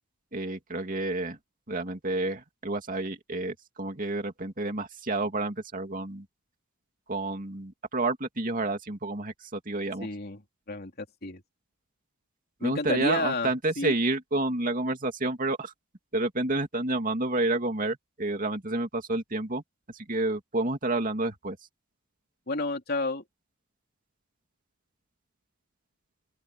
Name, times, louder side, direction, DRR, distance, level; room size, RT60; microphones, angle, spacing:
voice 1, 0.3-1.4 1.7-6.3 7.1-10.1 12.6-15.7 16.1-19.6 19.9-21.6, right 2 dB, 40° right, 2.6 m, -29 dB
voice 2, 10.0-10.4 10.7-11.4 12.6-13.5 13.8-13.9 22.5-23.2, left 2 dB, 45° left, 3.1 m, -30 dB
open air
head